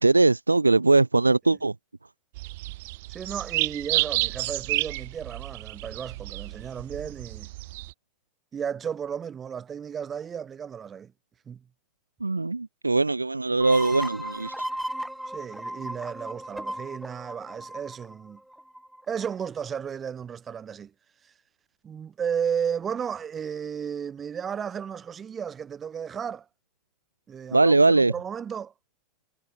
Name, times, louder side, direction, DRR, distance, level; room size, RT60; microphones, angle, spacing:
voice 1, 0.0-1.7 12.2-14.7 27.5-28.1, right 3 dB, 85° right, 0.7 m, -21 dB
sound 1, 2.4-7.9, right 20 dB, 55° right, 1.1 m, -30 dB
voice 2, 3.1-7.5 8.5-11.1 11.5-11.6 15.3-18.4 19.1-20.9 21.2-21.3 21.8-26.5 27.3-28.7, right 7 dB, 25° right, 4.3 m, -34 dB
sound 2, 13.6-19.0, right 1 dB, ahead, 1.8 m, -36 dB
figure-of-eight pair, 75°, 0 cm